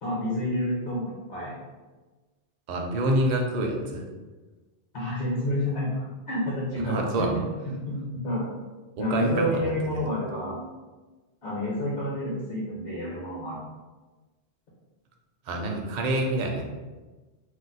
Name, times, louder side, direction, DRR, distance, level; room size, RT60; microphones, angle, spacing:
voice 1, 0.0-1.5 4.9-8.5 9.0-10.6 11.4-13.6, left 1 dB, 55° left, -7 dB, 1.0 m, -29 dB
voice 2, 2.7-4.0 6.8-7.4 9.0-9.7 15.5-16.7, right 1 dB, 55° right, 1 dB, 0.6 m, -27 dB
2.5 x 2.2 x 4.0 m, 1.2 s
omnidirectional pair, 1.1 m